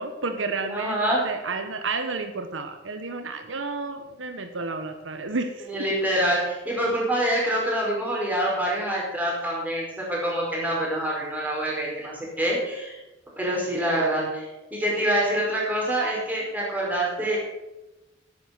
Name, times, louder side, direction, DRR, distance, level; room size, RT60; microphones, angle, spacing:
voice 1, 0.0-1.0 1.2-5.7, right 3 dB, 80° right, 7 dB, 1.2 m, -31 dB
voice 2, 0.7-1.2 5.7-13.0 13.4-17.4, right 1 dB, 10° right, -4 dB, 4.9 m, -26 dB
11.0 x 9.8 x 6.6 m, 1.0 s
head